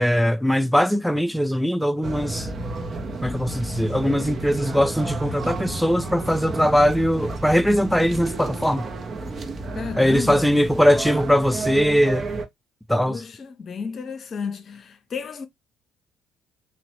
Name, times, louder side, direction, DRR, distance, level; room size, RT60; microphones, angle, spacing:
voice 1, 0.0-2.5 3.2-8.8 10.0-12.3 12.9-13.2, equal, ahead, 0.3 m, -20 dB
sound 1, 2.0-12.5, right 2 dB, 45° right, 0.6 m, -31 dB
voice 2, 9.7-10.6 13.1-15.5, left 5 dB, 50° left, 0.6 m, -32 dB
2.9 x 2.1 x 2.8 m
hypercardioid pair, 55°, 0 cm